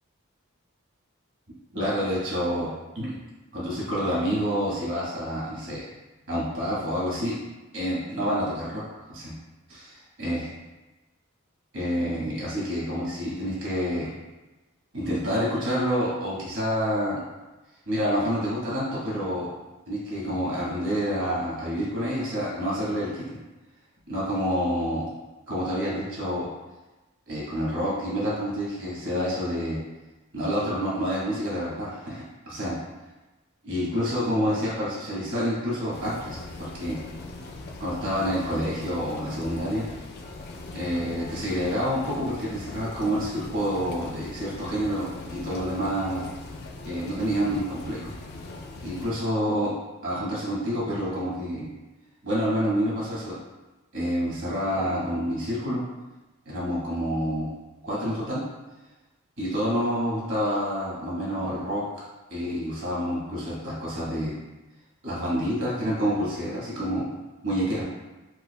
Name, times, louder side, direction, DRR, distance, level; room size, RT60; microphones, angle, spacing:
voice 1, 1.7-2.7 2.9-3.2 3.5-5.8 6.3-7.4 7.7-9.3 9.7-10.4 11.7-14.1 14.9-17.2 17.9-19.5 19.9-23.4 24.1-25.0 25.5-26.5 27.3-29.8 30.3-32.8 33.6-37.0 37.8-39.9 40.7-46.3 46.8-48.1 48.8-49.7 50.0-51.7 52.2-53.4 53.9-55.8 56.4-57.5 57.8-58.4 59.4-61.8 62.3-64.4 65.0-67.1 67.4-67.8, equal, 65° right, -7 dB, 1.3 m, -28 dB
sound 1, 35.9-49.1, left 2 dB, 50° left, 0.3 m, -40 dB
4.5 x 2.5 x 2.2 m, 1.1 s
head